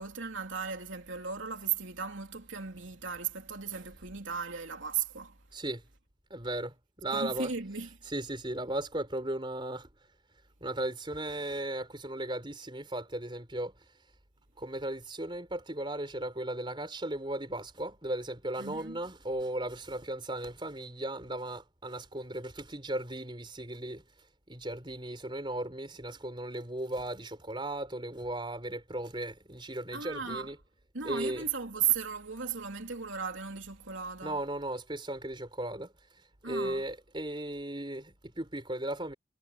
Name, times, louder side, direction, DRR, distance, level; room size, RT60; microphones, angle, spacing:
voice 1, 0.0-5.4 7.1-8.0 18.6-19.0 29.9-30.5 30.9-34.4 36.4-36.8, right 7 dB, 70° right, 3.3 m, -35 dB
voice 2, 5.5-5.8 6.3-7.5 8.1-9.9 10.6-13.7 14.6-24.0 24.5-30.6 31.0-31.4 34.2-35.9 36.4-39.1, right 1 dB, 25° right, 4.7 m, -36 dB
head